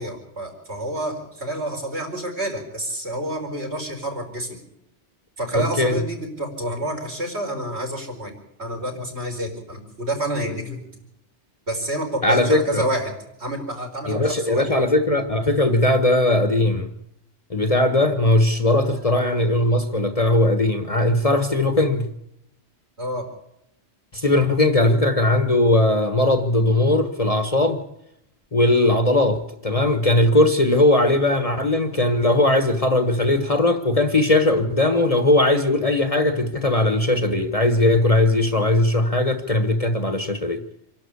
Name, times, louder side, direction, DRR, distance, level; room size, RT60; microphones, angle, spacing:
voice 1, 0.0-4.6 5.4-10.9 11.7-13.1 13.4-14.7 23.0-23.3, right 1 dB, 60° right, 4.9 m, -28 dB
voice 2, 5.5-5.9 12.2-12.9 14.1-16.9 17.5-22.1 24.1-27.8 28.5-40.6, left 1 dB, 30° left, 1.3 m, -19 dB
26.0 x 12.0 x 8.4 m
omnidirectional pair, 1.2 m